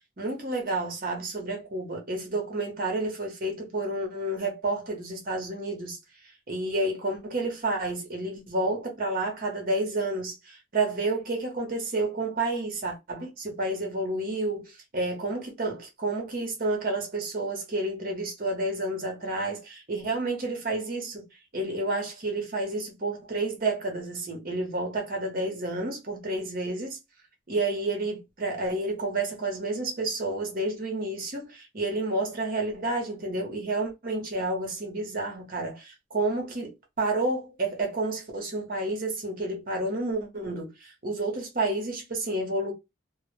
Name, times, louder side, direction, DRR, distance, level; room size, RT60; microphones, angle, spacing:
voice 1, 0.2-6.0 6.5-21.3 21.5-27.0 27.5-42.7, right 2 dB, 45° right, 0.7 m, -30 dB
2.1 x 2.0 x 3.1 m
head